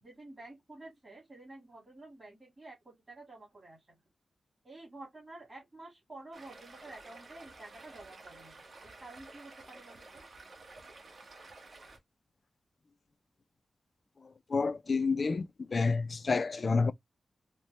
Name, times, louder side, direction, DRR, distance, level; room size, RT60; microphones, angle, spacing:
voice 1, 0.0-3.8 4.6-8.6 8.8-10.2, right 2 dB, 25° right, 1.7 m, -50 dB
Stream, 6.3-12.0, right 3 dB, 50° right, 1.1 m, -52 dB
voice 2, 14.5-16.9, left 4 dB, 45° left, 0.3 m, -29 dB
4.1 x 2.1 x 3.1 m
wide cardioid pair, 130°, 0 cm